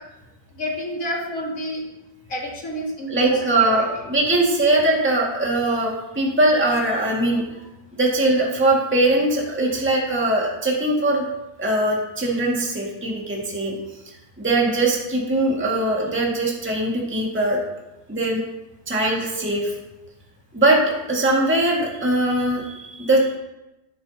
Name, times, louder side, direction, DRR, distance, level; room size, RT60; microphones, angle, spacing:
voice 1, 0.6-1.8 2.3-4.1, equal, 50° left, -2 dB, 2.5 m, -30 dB
voice 2, 3.1-7.4 8.0-11.2 11.6-13.7 14.4-17.6 18.1-18.4 18.9-19.7 20.5-23.4, right 2 dB, 5° right, -3 dB, 1.7 m, -21 dB
12.0 x 9.9 x 2.8 m, 0.97 s
omnidirectional pair, 1.9 m